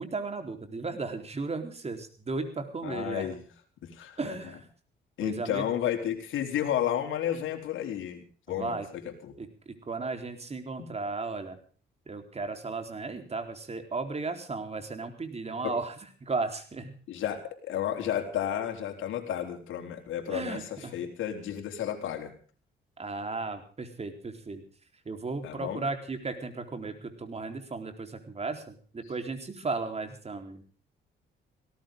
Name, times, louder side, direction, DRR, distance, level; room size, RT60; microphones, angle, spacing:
voice 1, 0.0-3.3 4.2-4.6 5.2-5.6 8.6-8.9 9.4-11.6 12.1-15.9 16.2-17.0 20.3-20.9 23.0-24.6 25.1-30.6, right 3 dB, 30° right, 6 dB, 4.0 m, -35 dB
voice 2, 2.8-3.4 3.8-4.4 5.2-9.4 10.8-10.9 15.6-15.8 17.1-22.3 25.4-25.8, left 10 dB, 80° left, 4 dB, 4.1 m, -32 dB
19.0 x 17.5 x 3.8 m, 0.42 s
cardioid pair, 90°, 20 cm